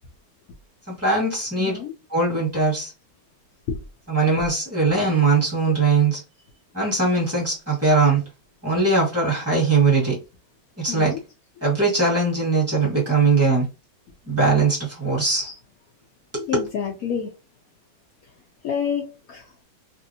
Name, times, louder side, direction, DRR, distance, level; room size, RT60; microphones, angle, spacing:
voice 1, 0.9-1.8 2.1-2.9 4.1-6.2 6.7-8.2 8.6-10.2 10.8-11.1 11.6-13.6 14.3-15.5 16.3-16.6, right 3 dB, 10° right, 1.4 m, -20 dB
voice 2, 1.6-1.9 3.7-3.8 4.4-4.5 10.9-11.2 15.4-15.5 16.5-17.3 18.6-19.5, left 7 dB, 70° left, 0.8 m, -28 dB
3.0 x 2.7 x 2.7 m
omnidirectional pair, 2.1 m